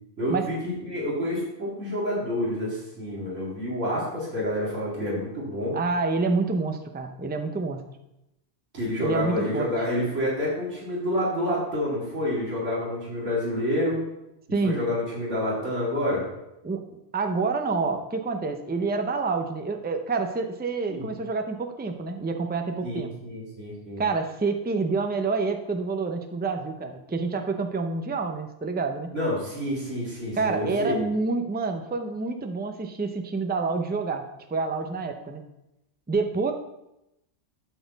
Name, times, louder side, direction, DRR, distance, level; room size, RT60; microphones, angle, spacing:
voice 1, 0.2-5.8 8.7-14.0 14.6-16.2 20.9-21.1 22.8-24.0 29.1-31.0, left 1 dB, 85° right, -6 dB, 2.5 m, -28 dB
voice 2, 5.7-7.9 9.0-9.7 14.5-14.9 16.6-23.1 24.0-29.1 30.3-34.2 34.5-35.4 36.1-36.5, right 4 dB, 15° right, 6 dB, 0.3 m, -28 dB
12.0 x 4.2 x 4.0 m, 0.88 s
omnidirectional pair, 1.2 m